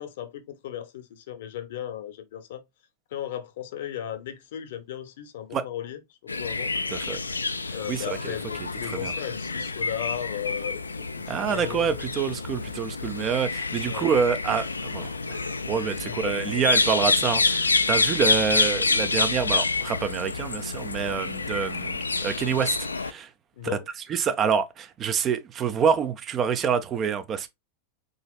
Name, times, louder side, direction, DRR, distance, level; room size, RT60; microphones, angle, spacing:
voice 1, 0.0-2.6 3.1-6.0 6.4-6.7 7.7-10.8 11.3-12.0 13.9-14.1 16.0-16.4 23.6-23.9, left 11 dB, 55° left, 0.7 m, -36 dB
sound 1, 6.3-23.1, left 3 dB, 80° left, 0.3 m, -28 dB
voice 2, 7.9-8.4 8.8-9.1 11.3-23.3 23.6-23.8 24.1-27.5, right 7 dB, 30° right, 0.5 m, -27 dB
4.1 x 3.9 x 2.3 m
figure-of-eight pair, 90°, 0 cm